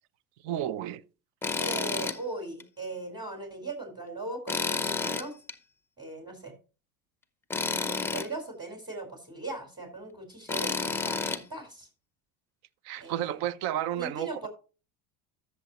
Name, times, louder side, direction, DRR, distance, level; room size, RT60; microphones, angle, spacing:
voice 1, 0.4-1.0 12.8-14.5, right 11 dB, 60° right, 0.7 m, -32 dB
Tools, 1.4-2.2 2.6-2.7 4.5-5.5 7.5-8.3 10.5-11.4, left 4 dB, 5° left, 0.6 m, -30 dB
voice 2, 1.6-5.3 6.0-6.5 7.9-11.9 13.0-13.3 13.9-14.5, right 2 dB, 10° right, 4.4 m, -39 dB
13.0 x 6.9 x 3.0 m
supercardioid pair, 120°, 44 cm